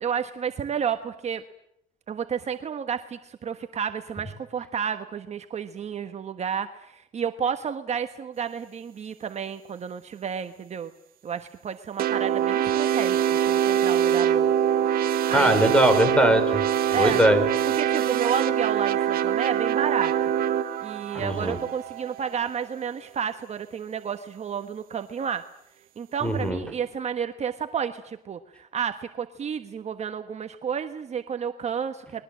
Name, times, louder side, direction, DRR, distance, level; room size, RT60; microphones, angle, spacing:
voice 1, 0.0-1.4 2.1-10.9 11.2-14.5 15.3-15.6 16.9-17.2 17.8-20.1 20.8-25.5 26.0-32.2, right 7 dB, 40° right, 8 dB, 1.3 m, -31 dB
sound 1, 12.0-22.5, right 9 dB, 60° right, 1.8 m, -24 dB
voice 2, 15.3-16.6 16.9-17.5 21.1-21.6 26.2-26.6, equal, 5° left, 10 dB, 4.7 m, -21 dB
29.5 x 22.0 x 7.6 m, 0.77 s
cardioid pair, 110°, 17 cm